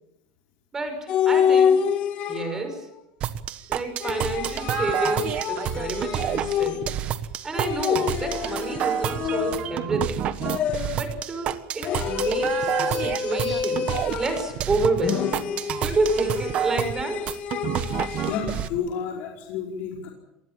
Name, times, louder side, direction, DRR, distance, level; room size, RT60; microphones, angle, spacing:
voice 1, 0.7-1.8 2.3-2.9 3.7-6.8 7.4-10.3 10.9-13.9 14.2-15.4 15.8-17.3, right 3 dB, 15° right, 6 dB, 5.9 m, -29 dB
sound 1, 1.1-2.8 4.0-7.1 7.5-9.9 10.4-11.1 11.8-14.6 15.0-18.5, left 8 dB, 40° left, 2.0 m, -27 dB
sound 2, 3.2-18.7, right 10 dB, 40° right, 1.4 m, -29 dB
voice 2, 18.2-20.1, left 7 dB, 60° left, 0 dB, 5.0 m, -30 dB
27.0 x 20.0 x 7.5 m, 0.87 s
cardioid pair, 150°, 3 cm